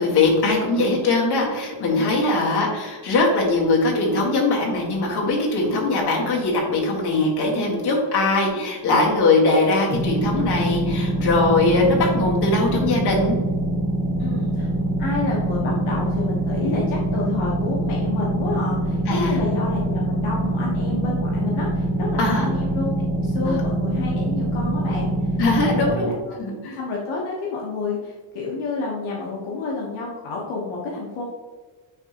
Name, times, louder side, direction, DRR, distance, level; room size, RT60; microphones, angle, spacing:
voice 1, 0.0-13.4 19.1-19.4 22.2-22.5 23.4-23.6 25.4-26.1 26.4-26.8, left 2 dB, 50° left, -2 dB, 1.8 m, -21 dB
sound 1, 9.9-25.9, right 1 dB, 25° right, 1.3 m, -24 dB
voice 2, 14.2-14.7 15.0-25.3 25.8-26.4 26.8-31.2, left 3 dB, 70° left, -4 dB, 1.4 m, -29 dB
9.6 x 3.6 x 2.9 m, 1.3 s
cardioid pair, 150°, 49 cm